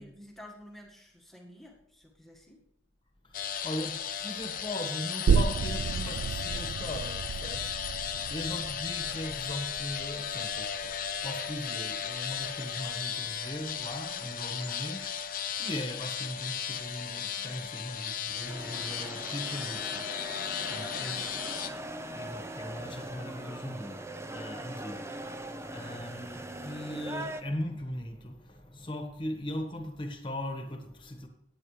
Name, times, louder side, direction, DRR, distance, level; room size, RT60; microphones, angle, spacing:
voice 1, 0.0-2.6 8.1-8.4 17.4-17.6 20.4-22.1, left 1 dB, ahead, -1 dB, 1.7 m, -51 dB
sound 1, 3.3-21.7, left 8 dB, 45° left, 0.8 m, -36 dB
voice 2, 3.6-3.9 4.2-7.7 8.3-15.2 15.6-20.0 20.7-21.2 22.1-24.0 24.3-25.0 25.7-31.3, left 1 dB, 25° left, 4 dB, 1.4 m, -39 dB
sound 2, 5.3-12.5 12.9-13.0, right 6 dB, 75° right, 0.3 m, -32 dB
sound 3, 18.5-27.4, right 1 dB, 15° right, 0.6 m, -41 dB
18.0 x 8.8 x 3.3 m, 0.77 s
head